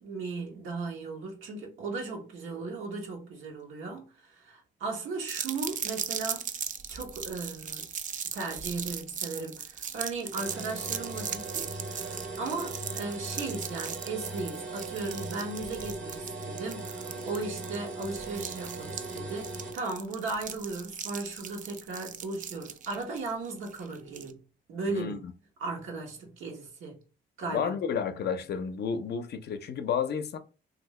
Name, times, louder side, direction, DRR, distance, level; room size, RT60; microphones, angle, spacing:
voice 1, 0.0-6.5 6.9-7.8 8.3-24.4 24.7-25.2 25.6-27.0 27.4-27.7, right 3 dB, 85° right, 1.2 m, -36 dB
sound 1, 5.3-24.3, right 7 dB, 40° right, 0.4 m, -38 dB
sound 2, 10.3-19.7, right 2 dB, 70° right, 1.2 m, -39 dB
voice 2, 24.9-25.3 27.5-30.4, left 7 dB, 55° left, 0.5 m, -31 dB
2.7 x 2.6 x 3.1 m
cardioid pair, 90°, 20 cm